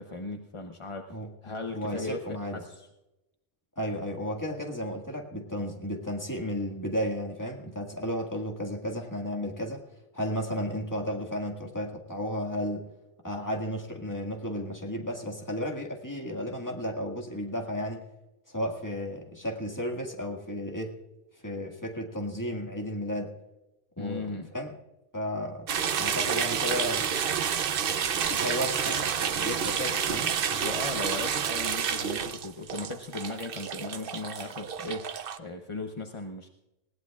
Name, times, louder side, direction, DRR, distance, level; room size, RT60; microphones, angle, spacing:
voice 1, 0.0-1.2 1.4-2.9 24.0-24.5 30.5-36.5, left 3 dB, 30° left, 4 dB, 0.6 m, -37 dB
voice 2, 1.7-2.6 3.8-9.8 10.1-12.9 13.2-18.1 18.5-21.0 21.3-23.3 24.0-24.7 25.1-25.7 26.0-27.1 28.1-30.4, equal, 15° left, 1 dB, 1.7 m, -33 dB
sound 1, 25.7-35.4, right 7 dB, 55° right, 0.8 m, -29 dB
20.5 x 17.5 x 2.4 m, 0.96 s
omnidirectional pair, 1.3 m